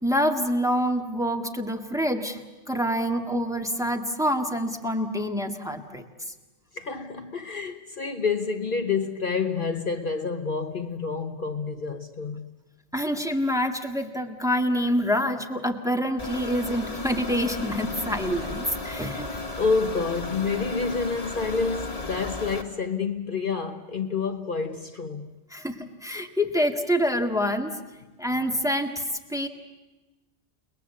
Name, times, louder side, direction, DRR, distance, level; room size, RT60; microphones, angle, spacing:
voice 1, 0.0-2.4 2.7-6.0 12.9-19.3 25.5-27.7 28.2-29.0 29.3-29.5, equal, 5° right, 1.8 m, -26 dB
voice 2, 6.7-12.5 19.3-25.3, left 4 dB, 50° left, 1.2 m, -28 dB
sound 1, 16.2-22.6, left 2 dB, 35° left, 1.8 m, -34 dB
29.5 x 20.5 x 8.4 m
omnidirectional pair, 1.2 m